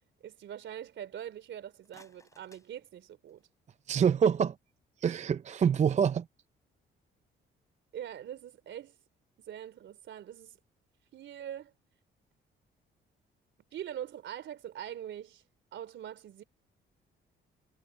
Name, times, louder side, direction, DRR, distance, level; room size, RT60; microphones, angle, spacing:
voice 1, 0.2-3.5 7.9-9.0 9.4-10.6 11.1-11.7 13.7-15.4 15.7-16.4, right 10 dB, 70° right, 3.5 m, -43 dB
sound 1, 1.7-3.6, left 2 dB, 15° left, 6.0 m, -63 dB
voice 2, 3.9-4.6 5.0-6.3, right 7 dB, 35° right, 0.5 m, -26 dB
cardioid pair, 90°, 20 cm